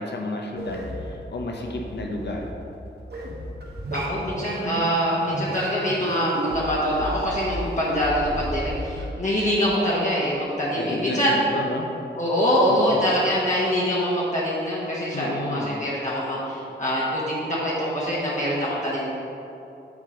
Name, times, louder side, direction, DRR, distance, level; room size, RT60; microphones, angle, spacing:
voice 1, 0.0-2.5 10.7-11.9 12.7-13.1 15.1-15.8, left 2 dB, 65° left, 1 dB, 0.8 m, -31 dB
sound 1, 0.5-9.0, right 1 dB, 60° right, 1.2 m, -33 dB
voice 2, 3.9-11.4 12.2-19.1, equal, 40° left, -7 dB, 1.2 m, -24 dB
8.1 x 3.8 x 5.0 m, 2.8 s
wide cardioid pair, 100°, 19 cm